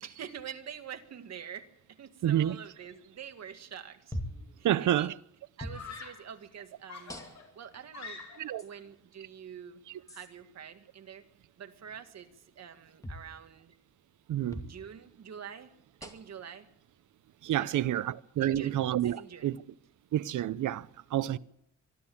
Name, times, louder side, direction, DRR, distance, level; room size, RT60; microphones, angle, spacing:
voice 1, 0.0-4.2 4.6-5.1 5.6-7.2 7.5-8.2 8.6-9.8 10.1-11.2 11.6-13.8 14.6-16.7 17.6-18.0 18.4-19.5 21.3-21.4, right 8 dB, 60° right, 1.9 m, -46 dB
voice 2, 2.2-2.6 4.6-5.1 8.4-8.6 14.3-14.6 17.4-19.6 20.1-21.4, right 12 dB, 90° right, 0.7 m, -29 dB
sound 1, 4.1-4.5 5.6-5.8 7.1-7.6 8.6-8.7 10.1-10.3 13.0-13.3 14.5-14.8 16.0-16.4 17.5-17.6 19.0-19.2, equal, 10° left, 2.3 m, -41 dB
Screaming, 4.2-4.6 5.7-6.3 6.9-8.6, left 5 dB, 65° left, 4.7 m, -46 dB
25.0 x 12.5 x 8.6 m
wide cardioid pair, 155°, 30 cm